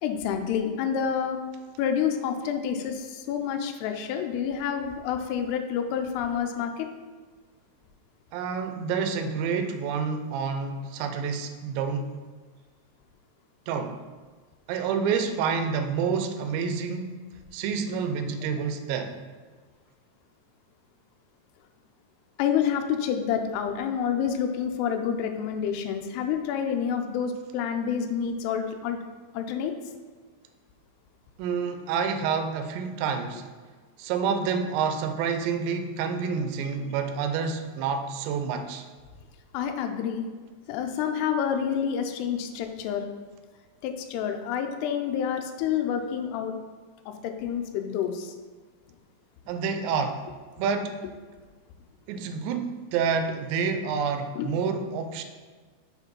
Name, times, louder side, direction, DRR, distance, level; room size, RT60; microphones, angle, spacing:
voice 1, 0.0-1.4 1.8-6.9 22.4-29.0 29.3-29.7 39.5-40.3 40.7-43.1 43.8-46.6 47.1-48.3 54.4-54.5, left 8 dB, 85° left, 5 dB, 2.3 m, -28 dB
voice 2, 8.3-12.2 13.7-14.0 14.7-17.2 17.5-19.2 31.4-33.5 34.0-38.9 49.5-50.3 50.5-51.0 52.1-55.2, right 6 dB, 80° right, 8 dB, 2.7 m, -28 dB
6.4 x 4.9 x 5.3 m, 1.4 s
omnidirectional pair, 5.3 m